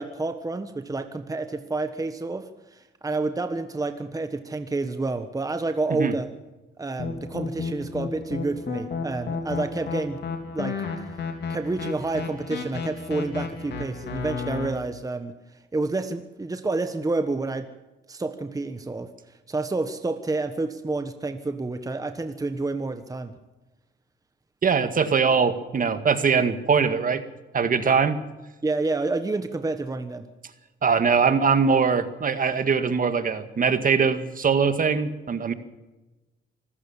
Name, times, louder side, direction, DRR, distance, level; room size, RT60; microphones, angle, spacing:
voice 1, 0.0-6.3 6.8-10.2 10.5-10.8 11.5-15.3 15.7-17.7 18.1-23.3 28.6-30.3, right 3 dB, 15° right, 9 dB, 1.3 m, -29 dB
sound 1, 7.0-14.7, left 5 dB, 60° left, 3.9 m, -32 dB
voice 2, 24.6-27.2 27.5-28.2 30.8-35.5, right 5 dB, 45° right, 10 dB, 1.9 m, -22 dB
25.0 x 14.5 x 7.3 m, 1.1 s
cardioid pair, 90°, 20 cm